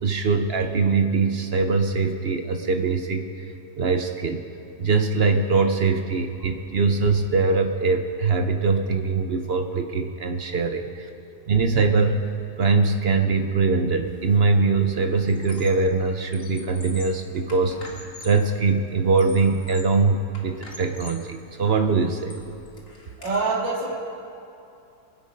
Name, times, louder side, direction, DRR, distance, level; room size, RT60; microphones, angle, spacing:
voice 1, 0.0-3.5 3.8-4.4 4.8-11.1 11.5-12.2 12.6-17.8 18.2-22.3, right 4 dB, 55° right, 6 dB, 0.7 m, -22 dB
Squeak, 14.1-14.4 14.7-15.9 16.2-18.5 19.0-20.0 20.3-21.3 21.8-23.3, left 2 dB, 50° left, 2.5 m, -44 dB
voice 2, 23.2-23.9, right 3 dB, 90° right, -4 dB, 2.7 m, -26 dB
24.5 x 9.1 x 5.3 m, 2.7 s
omnidirectional pair, 1.9 m